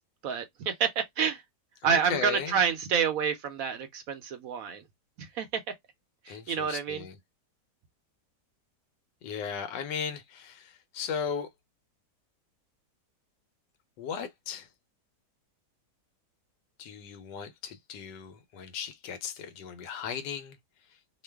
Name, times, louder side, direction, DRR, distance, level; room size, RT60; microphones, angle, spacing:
voice 1, 0.2-1.4 1.8-4.8 5.2-5.6 6.3-7.0, right 6 dB, 70° right, 0.9 m, -28 dB
voice 2, 1.8-2.6 6.3-7.1 9.2-11.5 14.0-14.7 16.8-20.6, left 7 dB, 85° left, 1.3 m, -36 dB
3.0 x 2.2 x 3.3 m
omnidirectional pair, 1.8 m